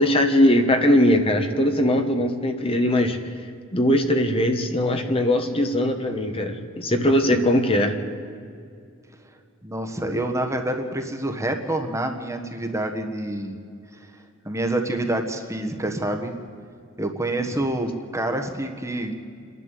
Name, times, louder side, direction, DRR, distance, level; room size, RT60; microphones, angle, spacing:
voice 1, 0.0-3.3 3.7-8.0, left 1 dB, 25° left, 6 dB, 1.4 m, -20 dB
voice 2, 9.6-13.6 14.4-16.3 17.0-19.1, right 1 dB, 15° right, 4 dB, 1.4 m, -27 dB
29.0 x 11.0 x 8.4 m, 2.3 s
head